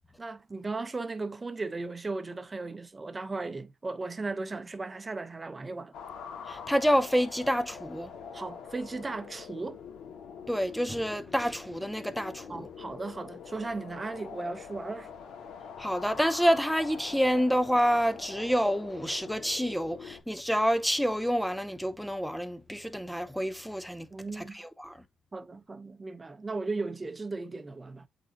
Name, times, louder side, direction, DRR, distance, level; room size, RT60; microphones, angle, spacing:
voice 1, 0.2-5.9 8.3-9.8 12.5-15.1 24.1-24.6 25.3-28.1, right 3 dB, 25° right, 1.0 m, -36 dB
sound 1, 5.9-20.2, left 7 dB, 80° left, 1.9 m, -44 dB
voice 2, 6.5-8.1 10.5-12.7 15.8-25.0, equal, ahead, 0.9 m, -28 dB
8.2 x 3.9 x 2.9 m
cardioid pair, 90°, 0 cm